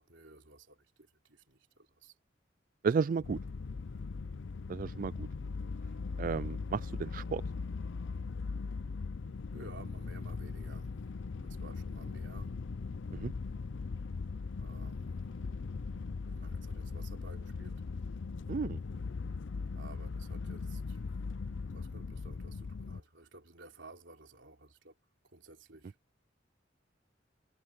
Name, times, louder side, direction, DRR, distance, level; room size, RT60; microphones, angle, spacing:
voice 1, 0.0-2.2 9.5-10.9 11.4-12.6 14.6-15.3 16.3-17.8 19.7-21.0 21.7-25.0 25.2-26.0, right 2 dB, 70° right, 3.8 m, -54 dB
voice 2, 2.8-3.4 4.7-5.3 6.2-7.4 13.1-13.3 18.5-18.8, right 5 dB, 45° right, 0.3 m, -33 dB
sound 1, 3.2-23.0, left 4 dB, 75° left, 0.6 m, -39 dB
head